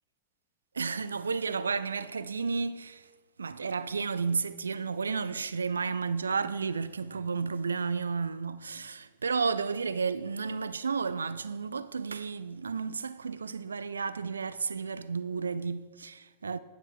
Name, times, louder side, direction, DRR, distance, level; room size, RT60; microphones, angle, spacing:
voice 1, 0.7-3.1 3.4-16.6, right 5 dB, 75° right, 0.3 m, -32 dB
9.9 x 6.7 x 6.1 m
figure-of-eight pair, 90°, 0 cm